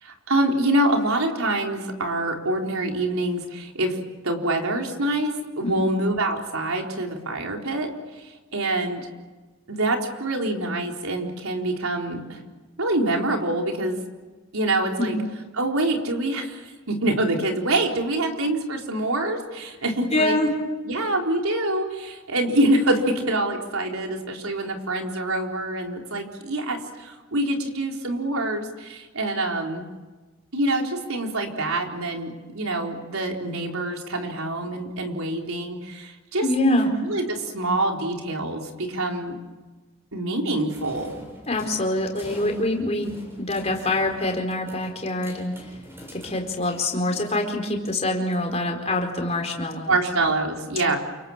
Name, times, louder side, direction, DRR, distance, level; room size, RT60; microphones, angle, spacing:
voice 1, 0.0-4.0 4.2-9.1 9.7-12.4 12.8-14.0 14.5-15.2 15.6-20.4 20.9-29.8 30.5-36.4 37.0-39.4 40.1-41.3 49.9-51.0, right 1 dB, 85° right, 2 dB, 4.2 m, -25 dB
voice 2, 20.1-20.5 36.4-36.9 41.5-43.1 43.4-45.5 46.1-49.9, left 1 dB, 30° left, 3 dB, 4.4 m, -25 dB
sound 1, 40.7-47.5, equal, 10° right, 7.4 m, -45 dB
29.0 x 26.0 x 7.4 m, 1.3 s
head